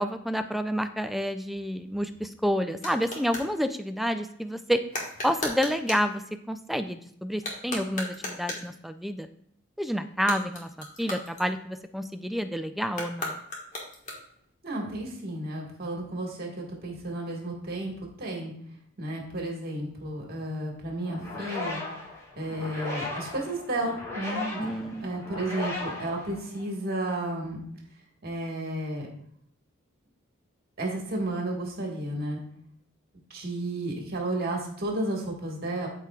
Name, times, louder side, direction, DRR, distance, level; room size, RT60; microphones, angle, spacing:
voice 1, 0.0-4.8 5.2-9.3 9.8-10.7 11.0-13.4 24.6-25.1, equal, ahead, 9 dB, 0.3 m, -29 dB
sound 1, 1.8-3.5 4.9-6.1 7.3-8.8 10.1-11.9 12.9-14.5, left 1 dB, 40° left, 1.5 m, -37 dB
voice 2, 14.6-18.5 19.0-21.8 22.4-24.7 25.0-27.6 28.2-29.1 30.8-32.4 33.3-35.9, right 1 dB, 50° right, 0 dB, 1.7 m, -32 dB
sound 2, 21.0-26.9, left 2 dB, 15° left, 3.2 m, -36 dB
13.0 x 4.5 x 2.3 m, 0.65 s
head